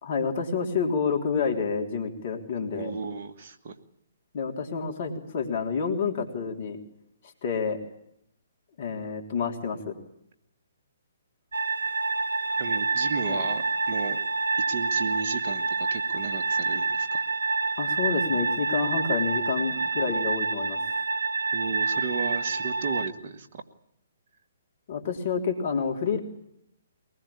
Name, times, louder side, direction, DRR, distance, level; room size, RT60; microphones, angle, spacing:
voice 1, 0.0-2.9 4.3-6.8 7.4-7.8 8.8-10.0 13.3-13.4 17.8-20.8 24.9-26.2, left 5 dB, 50° left, 4 dB, 3.6 m, -28 dB
voice 2, 2.7-3.8 12.6-14.2 14.6-17.2 21.5-23.6, right 5 dB, 50° right, 5 dB, 2.3 m, -34 dB
sound 1, 11.5-23.1, right 4 dB, 85° right, 1.1 m, -27 dB
23.0 x 20.0 x 8.7 m, 0.77 s
figure-of-eight pair, 130°, 0 cm